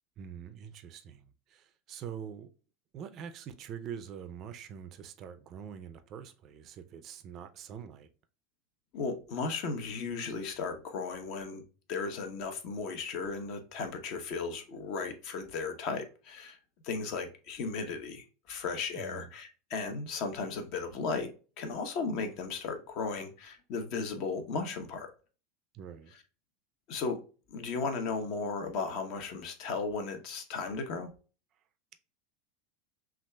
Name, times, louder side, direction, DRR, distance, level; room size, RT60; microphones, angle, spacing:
voice 1, 0.2-2.5 2.9-8.1 18.9-19.3 25.7-26.1, right 8 dB, 35° right, 0.4 m, -44 dB
voice 2, 8.9-11.6 11.9-16.6 16.8-21.3 21.6-25.1 26.9-27.2 27.5-31.1, left 4 dB, 50° left, 0.9 m, -35 dB
5.9 x 2.4 x 2.2 m
supercardioid pair, 160°, 0 cm